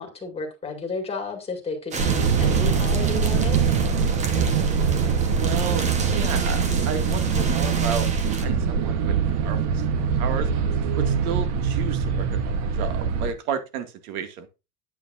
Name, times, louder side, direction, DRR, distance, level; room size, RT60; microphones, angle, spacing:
voice 1, 0.0-3.6, left 4 dB, 15° left, 2.1 m, -33 dB
sound 1, 1.9-8.4, right 4 dB, 15° right, 1.0 m, -33 dB
sound 2, 2.0-13.3, right 6 dB, 40° right, 1.1 m, -23 dB
voice 2, 5.3-9.1 9.4-9.8 10.2-10.5 11.0-14.5, right 7 dB, 80° right, 2.1 m, -32 dB
9.5 x 8.5 x 2.5 m
supercardioid pair, 165°, 43 cm